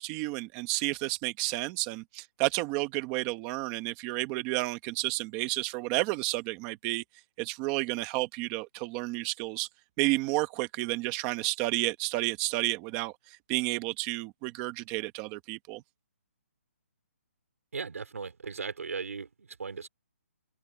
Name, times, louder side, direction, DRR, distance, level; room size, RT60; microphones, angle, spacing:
voice 1, 0.0-7.0 7.4-9.7 10.0-15.8, right 20 dB, 15° right, 1.4 m, -31 dB
voice 2, 17.7-19.9, right 5 dB, 80° right, 5.0 m, -37 dB
hypercardioid pair, 175°, 8 cm